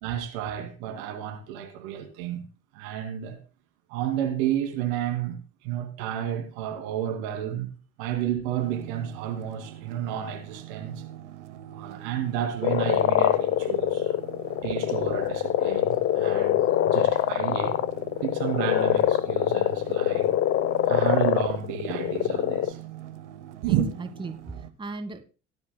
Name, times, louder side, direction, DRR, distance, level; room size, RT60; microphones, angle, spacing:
voice 1, 0.0-2.4 2.7-3.4 3.9-7.7 8.0-11.0 11.7-14.1 14.6-17.8 18.2-20.3 20.9-22.8 23.6-23.9, right 10 dB, 70° right, 2.4 m, -31 dB
sound 1, 8.6-24.7, right 12 dB, 85° right, 0.8 m, -43 dB
sound 2, 12.6-22.7, left 12 dB, 40° left, 0.8 m, -24 dB
voice 2, 23.6-25.2, right 3 dB, 15° right, 1.2 m, -37 dB
17.5 x 11.0 x 2.2 m
hypercardioid pair, 65°, 34 cm